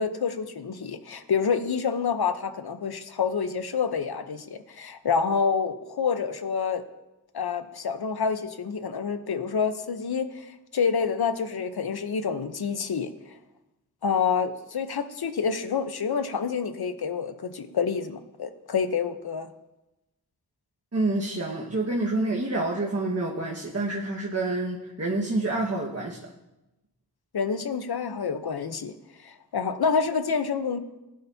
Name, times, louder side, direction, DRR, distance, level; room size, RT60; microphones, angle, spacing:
voice 1, 0.0-6.8 7.3-13.1 14.0-19.5 27.3-28.9 29.2-30.8, left 6 dB, 70° left, 10 dB, 0.9 m, -28 dB
voice 2, 20.9-26.2, right 2 dB, 40° right, -3 dB, 1.6 m, -28 dB
16.0 x 10.5 x 2.8 m, 0.98 s
cardioid pair, 55°, 39 cm